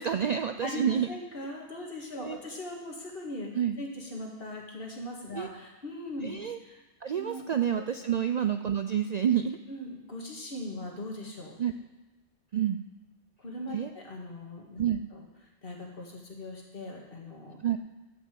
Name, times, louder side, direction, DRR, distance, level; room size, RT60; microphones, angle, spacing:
voice 1, 0.0-1.1 2.2-2.4 3.5-3.8 5.4-5.5 6.2-6.6 7.0-9.6 11.6-11.7 12.5-12.8 13.7-13.9 14.8-15.1 17.6-17.8, right 9 dB, 70° right, 8 dB, 0.4 m, -28 dB
voice 2, 0.6-6.4 6.6-6.8 7.2-7.4 7.7-7.8 9.7-11.6 13.4-14.8 15.1-15.3 15.6-17.6, left 1 dB, 50° left, 0 dB, 2.1 m, -40 dB
12.0 x 5.6 x 7.7 m, 1.2 s
omnidirectional pair, 1.2 m